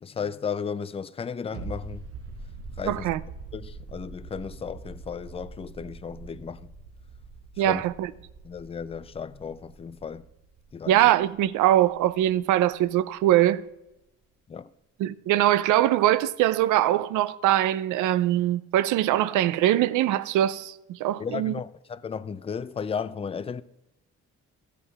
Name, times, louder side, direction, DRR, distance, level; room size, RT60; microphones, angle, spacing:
voice 1, 0.0-2.1 2.8-3.1 3.5-6.7 7.7-7.8 8.4-10.3 10.7-11.1 14.5-14.7 21.2-23.6, left 6 dB, 20° left, 0.3 m, -34 dB
sound 1, 1.5-12.9 13.2-13.3, right 4 dB, 50° right, 0.9 m, -43 dB
voice 2, 2.9-3.2 7.6-8.1 10.9-13.6 15.0-21.5, right 13 dB, 85° right, 0.5 m, -22 dB
14.0 x 8.2 x 2.3 m
cardioid pair, 90°, 30 cm